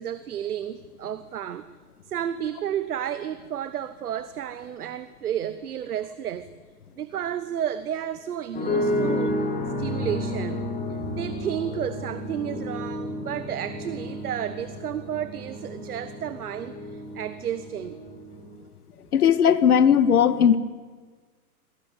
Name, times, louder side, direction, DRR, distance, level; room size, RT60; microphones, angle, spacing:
voice 1, 0.0-1.6 2.1-6.5 7.0-9.3 9.6-10.6 11.1-18.0, right 10 dB, 75° right, 12 dB, 1.3 m, -32 dB
sound 1, 8.5-18.6, left 1 dB, 15° left, 4.5 m, -31 dB
voice 2, 19.1-20.6, left 8 dB, 75° left, 13 dB, 2.0 m, -18 dB
25.0 x 18.0 x 9.2 m, 1.5 s
hypercardioid pair, 135°, 45 cm